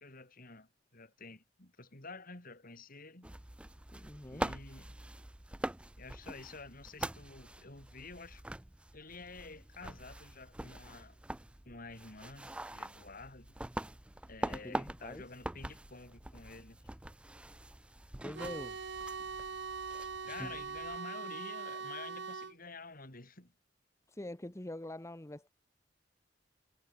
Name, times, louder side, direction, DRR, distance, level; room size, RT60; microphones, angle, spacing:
voice 1, 0.0-3.3 4.2-5.0 6.0-8.4 8.9-11.2 11.6-13.5 14.3-16.8 20.3-23.5, left 3 dB, 50° left, 4.2 m, -50 dB
sound 1, 3.2-21.0, right 1 dB, 5° right, 0.3 m, -44 dB
voice 2, 3.9-4.5 14.5-15.2 18.2-18.8 24.1-25.5, left 1 dB, 15° left, 0.9 m, -44 dB
sound 2, 18.3-22.5, right 5 dB, 65° right, 1.1 m, -42 dB
head